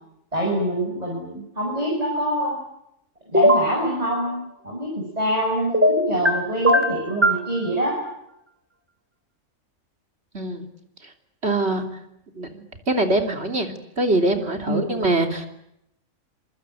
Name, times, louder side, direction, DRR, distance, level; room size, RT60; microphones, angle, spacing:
voice 1, 0.3-2.6 3.3-8.0 14.7-15.1, right 1 dB, 25° right, -2 dB, 7.1 m, -25 dB
sound 1, 3.3-3.7 5.7-6.3 6.6-7.4, equal, 10° right, 2.7 m, -17 dB
voice 2, 10.3-10.7 11.4-11.8 12.4-15.5, right 2 dB, 50° right, 5 dB, 3.5 m, -23 dB
27.0 x 23.0 x 9.1 m, 0.79 s
omnidirectional pair, 1.4 m